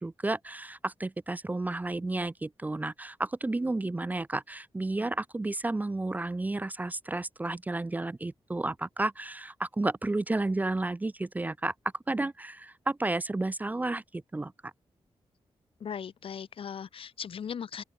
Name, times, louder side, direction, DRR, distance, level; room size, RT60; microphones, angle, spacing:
voice 1, 0.0-11.7 12.1-14.7, right 2 dB, 15° right, 0.7 m, -32 dB
voice 2, 15.8-17.8, left 7 dB, 70° left, 2.6 m, -38 dB
open air
wide cardioid pair, 135°, 10 cm